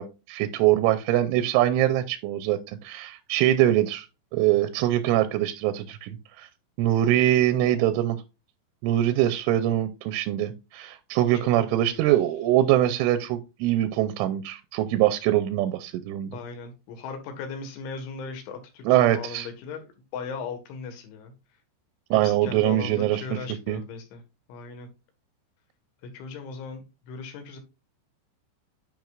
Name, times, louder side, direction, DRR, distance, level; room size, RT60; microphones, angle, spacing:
voice 1, 0.0-4.1 4.3-6.5 6.8-8.2 8.8-16.4 18.9-19.5 22.1-23.4 23.7-23.8, right 13 dB, 85° right, 11 dB, 2.9 m, -23 dB
voice 2, 11.6-12.0 16.3-21.3 22.2-24.2 24.5-24.9 26.0-27.6, left 5 dB, 70° left, 7 dB, 3.7 m, -38 dB
10.5 x 5.9 x 2.4 m, 0.28 s
omnidirectional pair, 5.9 m